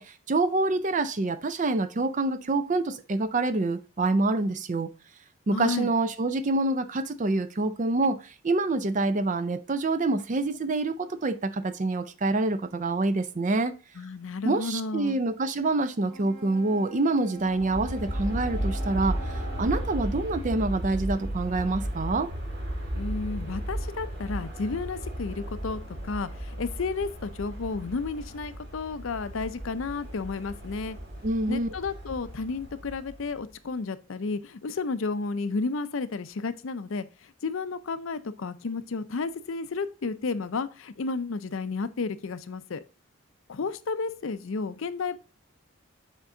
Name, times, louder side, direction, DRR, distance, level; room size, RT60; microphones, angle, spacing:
voice 1, 0.0-4.9 5.5-13.7 14.4-22.3 31.2-31.7, right 2 dB, 35° right, 0.4 m, -26 dB
voice 2, 5.5-5.9 14.0-15.2 22.9-31.0 31.5-42.8 43.5-45.2, left 4 dB, 70° left, 0.5 m, -32 dB
Wind instrument woodwind instrument, 16.0-19.9, right 1 dB, 85° right, 3.7 m, -47 dB
Aircraft, 17.4-33.5, right 1 dB, 50° right, 1.8 m, -35 dB
7.2 x 4.5 x 3.8 m
head